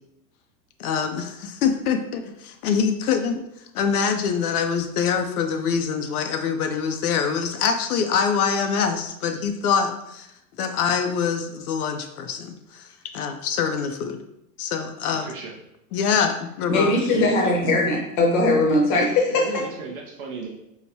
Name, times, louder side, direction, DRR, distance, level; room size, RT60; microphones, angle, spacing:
voice 1, 0.8-3.4 3.7-10.3 10.6-12.9 13.1-14.2 14.6-15.3 15.9-16.9, left 6 dB, 65° left, 7 dB, 0.5 m, -24 dB
voice 2, 15.0-15.6 17.1-17.5 19.3-20.5, right 5 dB, 35° right, -1 dB, 0.4 m, -36 dB
voice 3, 16.7-19.6, left 2 dB, 30° left, 0 dB, 0.8 m, -20 dB
4.6 x 2.1 x 2.7 m, 0.82 s
hypercardioid pair, 140°, 49 cm